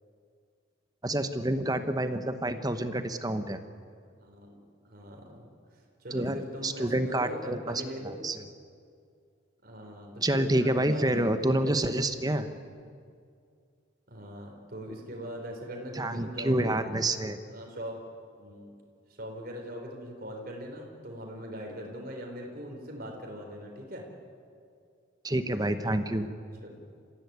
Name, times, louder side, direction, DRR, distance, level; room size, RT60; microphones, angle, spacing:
voice 1, 1.0-3.6 6.1-8.4 10.2-12.5 15.9-17.4 25.2-26.3, right 1 dB, 20° right, 9 dB, 1.0 m, -28 dB
voice 2, 4.2-5.5 6.0-8.3 9.6-11.3 11.6-11.7 12.3-12.6 14.1-16.8 17.5-18.0 18.4-18.7 19.2-24.1 26.6-26.8, equal, 45° right, 1 dB, 4.0 m, -41 dB
27.5 x 15.5 x 9.5 m, 2.3 s
head